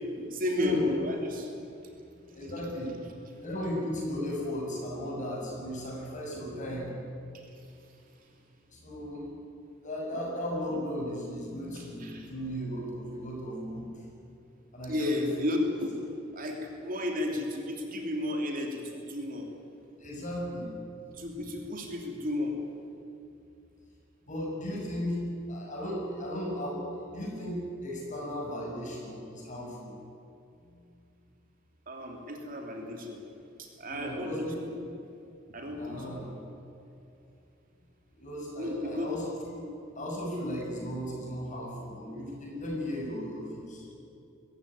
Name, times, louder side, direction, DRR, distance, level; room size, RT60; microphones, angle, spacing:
voice 1, 0.2-1.5 7.3-8.3 11.7-12.3 14.9-16.0 16.3-19.5 21.1-22.6 31.9-33.2 33.6-34.7 35.5-36.2 38.6-39.1, left 1 dB, 45° right, 2 dB, 3.1 m, -33 dB
voice 2, 2.1-3.0 3.4-6.9 8.7-9.3 9.8-13.9 14.7-15.3 20.0-20.7 21.1-21.7 24.3-25.2 25.5-29.9 30.6-30.8 33.9-34.6 35.6-36.3 38.1-39.3 40.0-43.9, equal, 40° left, -2 dB, 7.0 m, -36 dB
22.5 x 15.0 x 10.0 m, 2.6 s
head